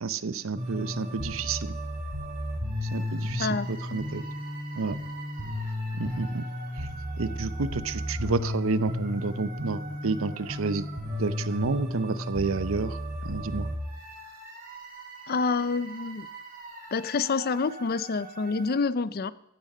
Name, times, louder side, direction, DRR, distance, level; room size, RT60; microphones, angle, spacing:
voice 1, 0.0-1.7 2.8-4.2 4.7-5.0 5.9-6.4 6.7-6.9 7.2-10.9 11.2-13.0 13.2-13.7, right 4 dB, 75° right, 16 dB, 0.7 m, -30 dB
sound 1, 0.6-18.8, left 1 dB, 45° right, 4.7 m, -35 dB
voice 2, 15.3-16.3 16.9-19.3, left 4 dB, 50° left, 18 dB, 0.5 m, -27 dB
15.0 x 8.9 x 5.5 m, 0.87 s
head